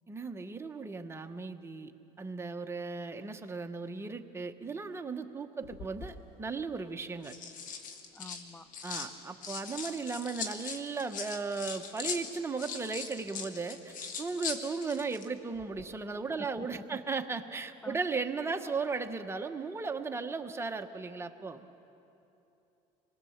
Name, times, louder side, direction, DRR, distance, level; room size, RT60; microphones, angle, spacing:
voice 1, 0.1-1.9 2.2-7.3 8.8-21.7, right 4 dB, 15° right, 6 dB, 1.1 m, -36 dB
sound 1, 5.6-6.1 7.0-9.1 9.4-15.3 15.6-15.8, left 6 dB, 55° left, 2.0 m, -40 dB
voice 2, 8.1-8.7 16.4-17.0 17.8-18.0, left 2 dB, 10° left, 16 dB, 0.5 m, -47 dB
25.5 x 21.0 x 7.3 m, 2.9 s
cardioid pair, 120°, 16 cm